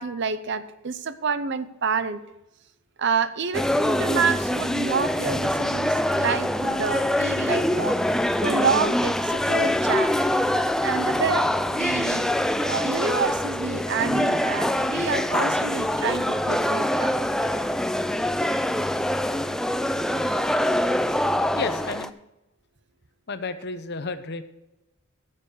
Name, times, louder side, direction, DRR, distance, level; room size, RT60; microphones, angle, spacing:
voice 1, 0.0-2.2 3.0-8.0 8.4-10.1 10.8-17.1, right 5 dB, 55° right, 13 dB, 0.7 m, -28 dB
sound 1, 3.5-22.1, left 1 dB, 5° left, 0.3 m, -24 dB
voice 2, 21.5-22.2 23.3-24.4, left 4 dB, 50° left, 10 dB, 0.8 m, -31 dB
14.0 x 7.5 x 4.9 m, 0.94 s
head